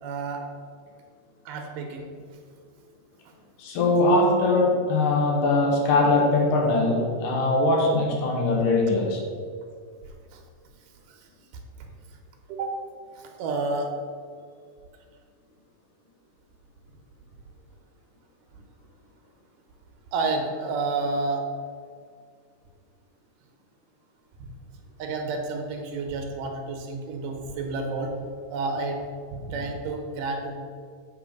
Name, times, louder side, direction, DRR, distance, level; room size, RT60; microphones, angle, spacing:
voice 1, 0.0-0.5 1.5-2.1 10.1-10.4 11.1-11.3 12.5-12.8 13.2-13.9 20.1-21.5 25.0-28.2 28.5-29.0 29.3-30.6, right 3 dB, 85° right, 2 dB, 2.5 m, -30 dB
voice 2, 3.6-9.2, left 2 dB, 90° left, -1 dB, 2.8 m, -21 dB
7.7 x 4.1 x 5.1 m, 2.1 s
omnidirectional pair, 3.7 m